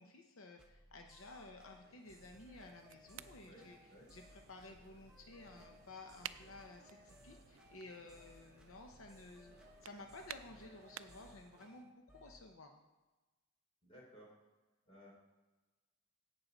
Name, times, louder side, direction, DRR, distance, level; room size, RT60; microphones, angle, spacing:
voice 1, 0.0-3.8 4.1-12.8, left 2 dB, 75° left, 3 dB, 0.8 m, -54 dB
sound 1, 0.6-12.5, equal, 5° right, 0.8 m, -63 dB
sound 2, 1.6-11.9, right 2 dB, 50° right, 1.0 m, -68 dB
sound 3, 2.0-11.4, right 11 dB, 70° right, 0.4 m, -56 dB
voice 2, 3.4-4.1 5.5-5.6 13.8-14.3 14.8-15.1, equal, 25° left, -4 dB, 3.2 m, -59 dB
16.5 x 5.7 x 4.0 m, 1.2 s
head